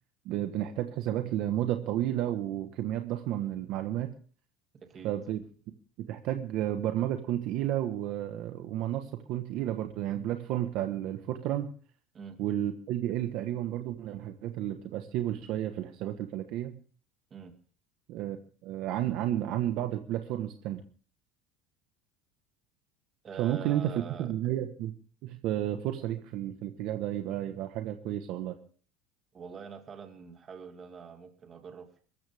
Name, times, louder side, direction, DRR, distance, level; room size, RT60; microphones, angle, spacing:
voice 1, 0.2-4.1 5.0-11.7 12.4-16.8 18.1-18.4 18.6-20.8 23.4-24.9 25.2-28.6, right 12 dB, 45° right, 6 dB, 1.3 m, -32 dB
voice 2, 4.7-5.1 12.1-12.4 17.3-17.5 23.2-24.3 29.3-32.0, right 6 dB, 20° right, 5 dB, 2.3 m, -45 dB
23.5 x 14.0 x 3.6 m, 0.42 s
cardioid pair, 180°, 0 cm